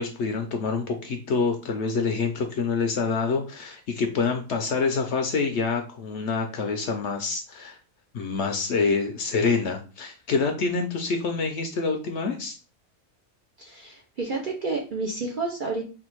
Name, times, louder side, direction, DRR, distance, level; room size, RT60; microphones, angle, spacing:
voice 1, 0.0-7.8 8.1-12.6, left 4 dB, 65° left, 4 dB, 0.8 m, -26 dB
voice 2, 13.6-15.8, right 3 dB, 50° right, -1 dB, 0.6 m, -30 dB
3.5 x 2.4 x 4.5 m, 0.35 s
omnidirectional pair, 1.5 m